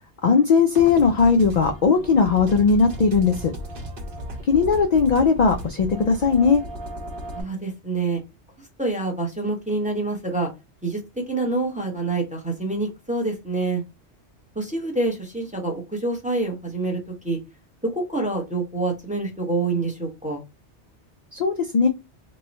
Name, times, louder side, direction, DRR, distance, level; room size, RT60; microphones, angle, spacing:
voice 1, 0.2-3.5 4.5-6.6 21.3-21.9, left 5 dB, 60° left, 5 dB, 0.4 m, -18 dB
sound 1, 0.8-7.4, equal, 55° right, 1.0 m, -35 dB
voice 2, 7.3-8.2 8.8-10.5 10.8-11.0 11.3-13.8 14.6-17.0 17.2-17.4 17.8-20.4, right 3 dB, 10° right, 0 dB, 0.7 m, -26 dB
3.0 x 2.3 x 3.9 m, 0.25 s
omnidirectional pair, 1.2 m